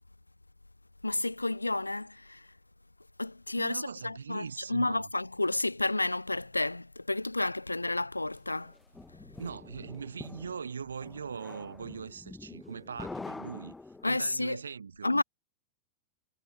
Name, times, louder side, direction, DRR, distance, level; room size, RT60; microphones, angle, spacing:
voice 1, 1.0-2.4 3.2-8.7 14.0-14.6 15.0-15.2, left 2 dB, 85° left, 0.5 m, -31 dB
voice 2, 3.6-5.1 9.4-13.7 14.0-15.2, right 6 dB, 70° right, 0.8 m, -40 dB
sound 1, 8.5-14.4, left 3 dB, 10° left, 1.1 m, -46 dB
figure-of-eight pair, 90°, 0 cm